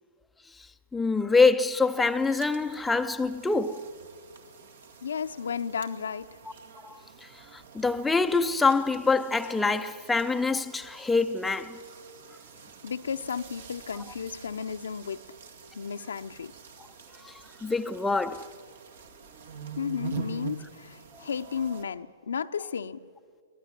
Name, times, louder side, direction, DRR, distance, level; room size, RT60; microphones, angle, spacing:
voice 1, 0.9-3.8 6.8-11.8 17.2-17.3 17.6-18.5 21.1-21.2, left 4 dB, 5° left, 0.6 m, -25 dB
sound 1, 1.9-21.8, right 6 dB, 65° right, 2.1 m, -46 dB
voice 2, 5.0-6.3 12.8-15.2 15.7-16.5 19.8-23.0, left 6 dB, 75° left, 0.7 m, -33 dB
23.5 x 18.0 x 7.6 m
hypercardioid pair, 125°, 0 cm